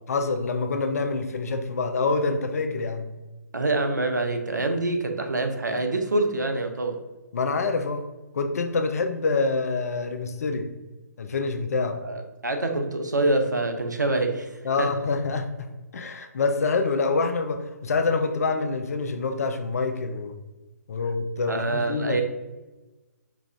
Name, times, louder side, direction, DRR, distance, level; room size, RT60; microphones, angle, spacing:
voice 1, 0.1-3.1 7.3-8.0 8.3-10.7 11.2-12.0 14.6-15.7 15.9-20.4 20.9-22.2, left 3 dB, 60° left, 7 dB, 0.5 m, -26 dB
voice 2, 3.5-7.0 12.0-14.9 21.5-22.2, right 2 dB, 85° right, 5 dB, 0.7 m, -26 dB
4.8 x 2.4 x 3.3 m, 1.1 s
figure-of-eight pair, 140°, 9 cm